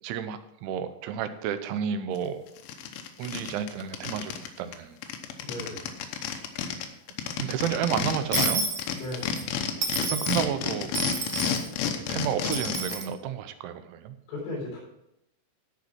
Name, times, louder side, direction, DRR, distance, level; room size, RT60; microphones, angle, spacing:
voice 1, 0.0-2.4 3.2-5.0 7.4-8.6 10.0-10.9 12.0-14.2, right 9 dB, 90° right, 10 dB, 3.1 m, -31 dB
sound 1, 2.2-2.3 2.6-4.5 4.7-4.8 5.0-8.5 8.8-13.0, left 8 dB, 90° left, 3.4 m, -30 dB
voice 2, 5.4-5.9 9.0-9.4 14.3-14.8, left 1 dB, 55° left, -6 dB, 5.6 m, -36 dB
Dishes pots and pans / Coin (dropping), 8.3-9.4 9.8-10.4 10.9-11.7 12.5-13.1, right 4 dB, 65° right, 1.6 m, -30 dB
13.5 x 5.2 x 6.0 m, 0.84 s
omnidirectional pair, 5.4 m